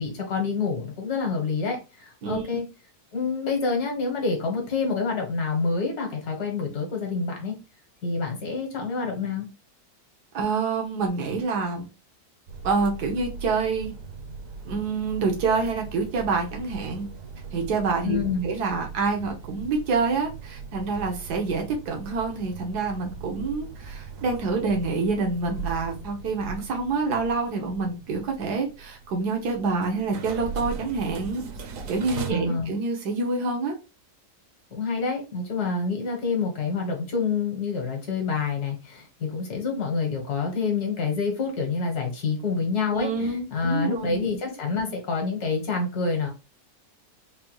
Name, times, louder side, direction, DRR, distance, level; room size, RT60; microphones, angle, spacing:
voice 1, 0.0-2.7 3.1-7.6 8.0-9.5 18.0-18.5 32.3-32.7 34.7-46.3, left 4 dB, 80° left, 1 dB, 2.0 m, -27 dB
voice 2, 10.3-11.9 12.6-13.9 14.6-17.1 17.5-18.2 18.4-31.4 31.9-33.8 42.9-44.2, right 4 dB, 85° right, 2 dB, 1.5 m, -27 dB
sound 1, 12.5-32.3, right 5 dB, 65° right, 1.0 m, -39 dB
4.8 x 2.3 x 3.1 m, 0.29 s
omnidirectional pair, 1.7 m